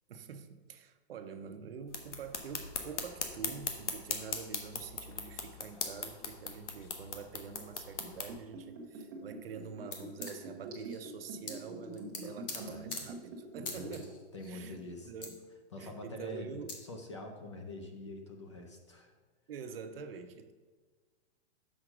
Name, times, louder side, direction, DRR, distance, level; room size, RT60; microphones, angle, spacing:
voice 1, 0.1-14.2 14.4-15.4 15.8-16.7 19.5-20.5, right 6 dB, 55° right, 8 dB, 0.7 m, -46 dB
sound 1, 1.9-8.3, left 5 dB, 85° left, 1.3 m, -40 dB
Liquid, 8.0-14.1 14.4-14.5, right 2 dB, 15° right, 0.8 m, -45 dB
sound 2, 9.9-10.0 10.2-11.1 11.5-11.6 11.8-12.6 12.9-13.0 13.7-14.5 14.8-14.9 15.2-15.3 16.3-16.4 16.7-16.8, left 4 dB, 50° left, 1.3 m, -42 dB
voice 2, 12.2-13.0 13.5-13.9 14.3-15.1 15.7-19.1, left 1 dB, 25° left, 4 dB, 0.4 m, -46 dB
6.3 x 5.0 x 5.9 m, 1.4 s
hypercardioid pair, 175°, 34 cm